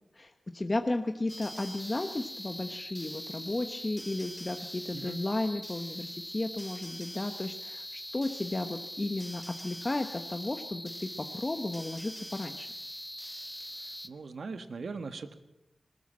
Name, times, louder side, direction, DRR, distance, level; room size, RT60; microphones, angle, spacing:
voice 1, 0.1-12.7, left 2 dB, 30° left, 6 dB, 1.1 m, -34 dB
sound 1, 1.3-14.1, equal, 5° left, 0.9 m, -42 dB
voice 2, 14.0-15.3, right 4 dB, 80° right, 9 dB, 1.5 m, -40 dB
21.0 x 20.0 x 7.4 m, 0.88 s
wide cardioid pair, 100°, 0 cm